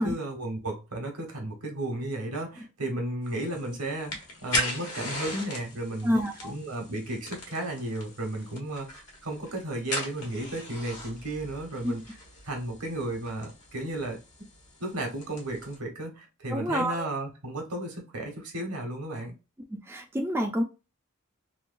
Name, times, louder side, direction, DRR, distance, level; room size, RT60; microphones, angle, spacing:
voice 1, 0.0-6.1 6.4-12.0 12.4-14.2 14.8-19.3, right 1 dB, 85° right, 1.1 m, -34 dB
sound 1, 3.3-15.8, left 1 dB, 80° left, 1.2 m, -38 dB
voice 2, 6.0-6.5 11.8-11.9 16.5-17.1 19.7-20.6, equal, 10° right, 0.3 m, -28 dB
3.0 x 2.2 x 2.5 m
head